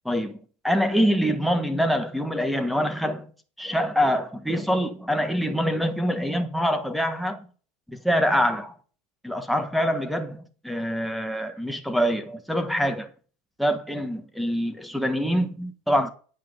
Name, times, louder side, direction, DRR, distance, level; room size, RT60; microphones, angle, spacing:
voice 1, 0.0-0.4 0.6-3.3 3.6-7.5 7.9-8.7 9.2-13.1 13.6-16.1, equal, ahead, 1.3 m, -25 dB
9.8 x 8.4 x 5.2 m
supercardioid pair, 145°, 0 cm